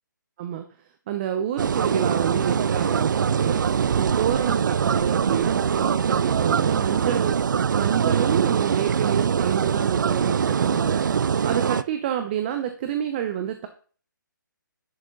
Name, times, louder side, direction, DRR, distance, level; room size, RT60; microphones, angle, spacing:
voice 1, 1.1-7.5 7.7-13.7, right 10 dB, 30° right, 8 dB, 0.8 m, -29 dB
sound 1, 1.6-11.8, right 7 dB, 70° right, 0.4 m, -23 dB
10.5 x 6.1 x 4.0 m, 0.41 s
hypercardioid pair, 155°, 11 cm